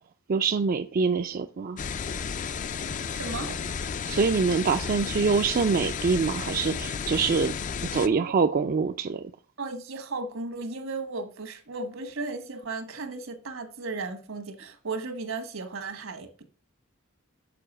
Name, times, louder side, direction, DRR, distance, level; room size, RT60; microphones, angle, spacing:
voice 1, 0.3-1.8 4.1-7.5 7.9-9.3, right 5 dB, 45° right, 0.4 m, -25 dB
sound 1, 1.8-8.1, left 6 dB, 40° left, 0.4 m, -33 dB
voice 2, 3.1-3.6 8.0-8.3 9.6-16.4, right 3 dB, 75° right, 1.4 m, -35 dB
6.8 x 4.7 x 6.0 m
head